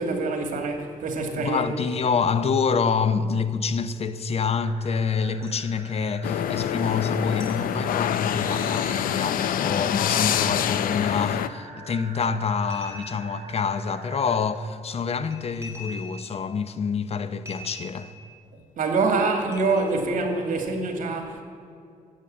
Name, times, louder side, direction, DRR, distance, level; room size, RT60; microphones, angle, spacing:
voice 1, 0.0-1.7 18.8-21.4, right 3 dB, 65° right, 2.3 m, -25 dB
voice 2, 1.4-18.1, left 5 dB, 45° left, 0.7 m, -27 dB
sound 1, 1.9-2.3 3.9-4.0 5.4-5.7 6.8-7.0 7.4-7.7 8.6-9.0 10.2-11.2 12.7-13.5 15.1-16.4 17.5-18.3 19.5-20.1, left 1 dB, 20° right, 3.0 m, -44 dB
sound 2, 4.5-14.4, right 3 dB, 45° right, 4.6 m, -44 dB
sound 3, 6.2-11.5, left 10 dB, 80° left, 0.6 m, -26 dB
14.0 x 8.2 x 8.9 m
cardioid pair, 100°, 14 cm